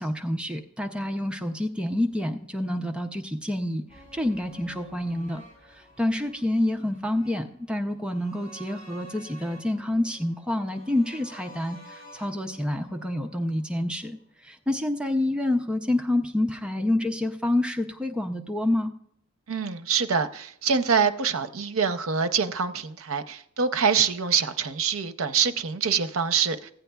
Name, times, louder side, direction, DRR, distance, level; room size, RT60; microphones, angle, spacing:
voice 1, 0.0-5.4 5.7-18.9, left 1 dB, 5° right, 0.5 m, -28 dB
sound 1, 3.9-14.0 14.3-14.4, equal, 25° left, 4.6 m, -51 dB
voice 2, 19.5-26.7, right 6 dB, 70° right, 0.6 m, -25 dB
15.5 x 9.0 x 2.3 m
head